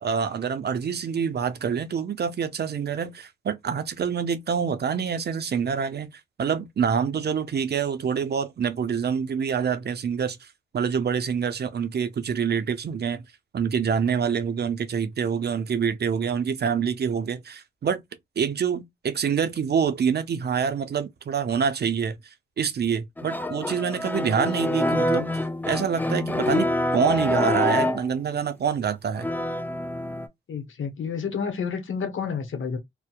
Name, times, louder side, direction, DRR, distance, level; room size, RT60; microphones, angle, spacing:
voice 1, 0.0-13.3 13.5-18.0 18.4-22.2 22.6-25.3 25.7-29.3, right 7 dB, 50° right, 0.5 m, -26 dB
sound 1, 23.2-28.2 29.2-30.3, left 1 dB, 10° left, 0.4 m, -26 dB
voice 2, 30.5-32.8, left 6 dB, 65° left, 0.9 m, -30 dB
2.7 x 2.1 x 2.2 m
cardioid pair, 55°, 21 cm